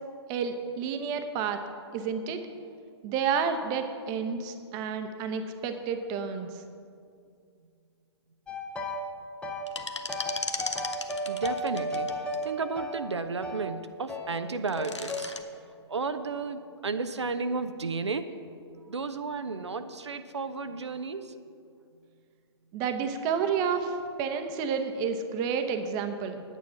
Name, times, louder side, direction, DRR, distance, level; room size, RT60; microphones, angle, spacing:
voice 1, 0.3-1.6 1.9-2.5 3.0-6.5 22.7-26.4, right 6 dB, 30° right, 7 dB, 0.9 m, -30 dB
sound 1, 8.5-9.1 9.4-13.7 14.1-14.3 14.8-15.3, equal, 10° left, 0.8 m, -34 dB
sound 2, 9.7-12.4 14.5-15.4, left 3 dB, 85° left, 0.8 m, -36 dB
voice 2, 11.3-15.3 15.9-18.4 18.9-21.4, right 4 dB, 75° right, 10 dB, 0.6 m, -33 dB
9.2 x 9.0 x 5.7 m, 2.3 s
figure-of-eight pair, 120°, 15 cm